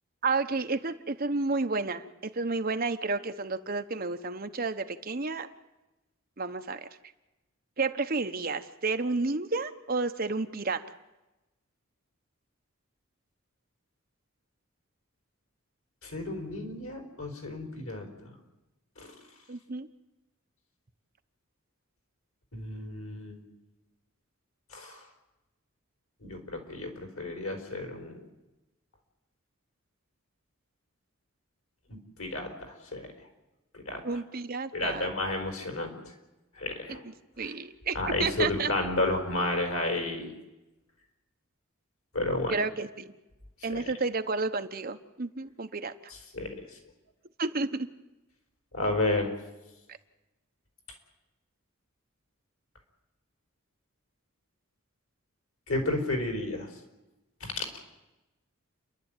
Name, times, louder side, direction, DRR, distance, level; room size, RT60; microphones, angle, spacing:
voice 1, 0.2-5.5 6.4-6.9 7.8-10.9 19.5-19.9 34.0-35.1 37.4-38.7 42.5-43.1 43.6-45.9 47.4-47.9, right 3 dB, 45° right, 8 dB, 1.0 m, -31 dB
voice 2, 16.0-18.3 19.0-19.1 22.5-23.4 24.7-25.0 26.2-28.2 31.9-33.1 33.7-34.0 34.7-36.0 36.6-37.0 37.4-37.5 37.9-40.3 42.1-42.6 43.8-43.9 46.3-46.6 48.7-49.3 55.7-56.7 57.4-57.6, left 2 dB, 85° left, 4 dB, 4.7 m, -32 dB
29.5 x 11.5 x 9.1 m, 1.0 s
head